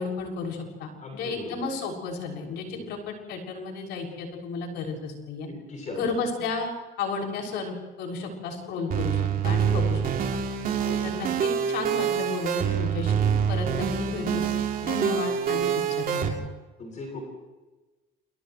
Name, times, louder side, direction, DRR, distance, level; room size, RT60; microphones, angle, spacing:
voice 1, 0.0-5.5 5.9-10.0 10.3-10.4 11.0-14.5 14.8-15.7 16.0-16.4, left 4 dB, 85° left, 1 dB, 6.6 m, -33 dB
voice 2, 1.0-1.6 2.7-2.9 5.5-6.1 6.4-6.5 9.5-9.9 10.7-11.0 16.8-17.2, left 2 dB, 45° left, 1 dB, 7.9 m, -38 dB
sound 1, 8.9-16.3, right 8 dB, 60° right, 3.0 m, -26 dB
29.5 x 29.0 x 3.2 m, 1.1 s
cardioid pair, 110°, 17 cm